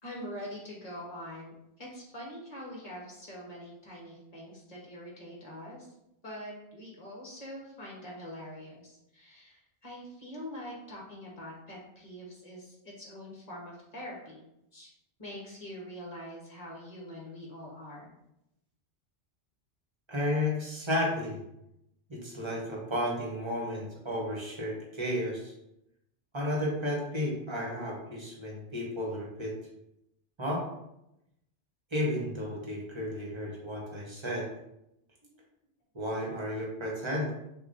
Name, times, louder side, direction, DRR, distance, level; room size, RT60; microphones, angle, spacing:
voice 1, 0.0-5.9 6.2-14.4 14.7-14.9 15.2-18.1 35.3-35.4, equal, 35° left, -4 dB, 1.3 m, -44 dB
voice 2, 20.1-21.4 22.1-25.5 26.3-29.5 30.4-30.7 31.9-34.5 35.9-37.3, left 1 dB, 25° right, -3 dB, 1.0 m, -33 dB
6.3 x 2.4 x 2.6 m, 0.84 s
omnidirectional pair, 1.2 m